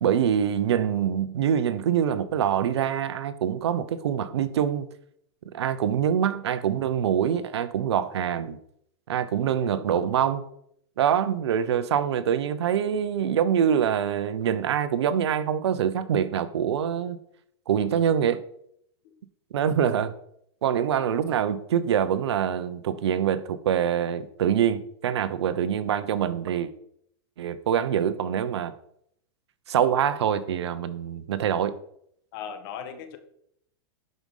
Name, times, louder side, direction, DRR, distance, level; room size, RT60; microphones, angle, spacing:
voice 1, 0.0-4.9 5.5-8.6 9.1-10.5 11.0-17.2 17.7-18.4 19.5-20.1 20.6-26.7 27.4-28.7 29.7-31.8, right 9 dB, 80° right, 14 dB, 1.0 m, -25 dB
voice 2, 9.5-9.9 19.0-19.1 32.3-33.2, left 7 dB, 60° left, 8 dB, 1.8 m, -39 dB
11.5 x 5.4 x 5.5 m, 0.71 s
hypercardioid pair, 130°, 14 cm